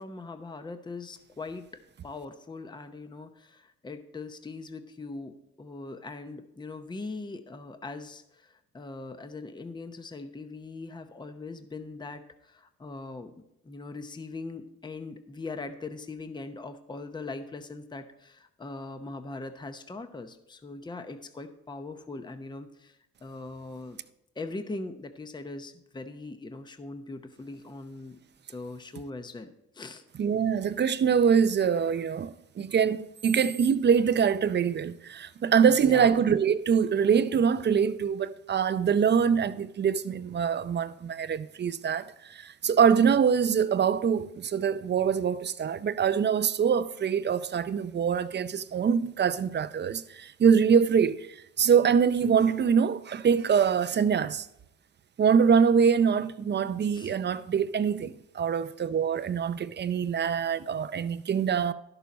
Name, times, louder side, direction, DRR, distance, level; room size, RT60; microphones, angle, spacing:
voice 1, 0.0-1.6 2.0-13.3 13.6-24.0 24.4-28.2 28.5-30.0 35.2-35.3 35.8-36.1 56.9-57.1, left 3 dB, 15° left, 0.7 m, -41 dB
voice 2, 30.2-54.5 55.2-61.7, right 7 dB, 35° right, 0.5 m, -24 dB
11.5 x 6.9 x 4.1 m
cardioid pair, 90°, 30 cm